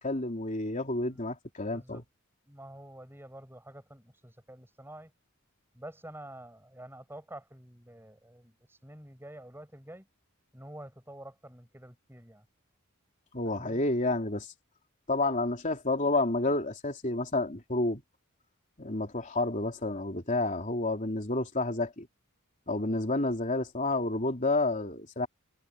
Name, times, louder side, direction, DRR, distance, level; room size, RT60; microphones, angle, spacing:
voice 1, 0.0-2.0 13.3-14.5 15.1-18.0 18.8-22.1 22.7-25.3, left 2 dB, 35° left, 3.5 m, -30 dB
voice 2, 1.7-2.0 2.5-5.1 5.7-10.1 10.5-12.5 13.5-13.8, right 1 dB, 10° right, 7.2 m, -48 dB
head